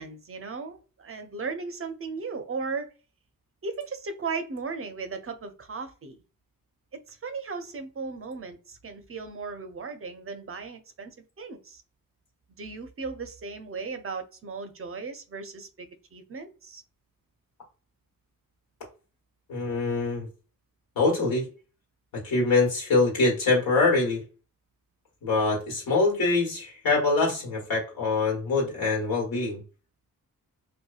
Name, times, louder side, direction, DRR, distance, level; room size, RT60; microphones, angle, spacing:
voice 1, 0.0-2.9 3.6-6.2 6.9-11.8 12.6-16.8, right 4 dB, 40° right, 8 dB, 0.5 m, -36 dB
voice 2, 19.5-20.3 20.9-21.4 22.2-24.2 25.2-29.6, left 3 dB, 80° left, -3 dB, 1.4 m, -24 dB
2.7 x 2.2 x 2.3 m, 0.35 s
cardioid pair, 75°, 35 cm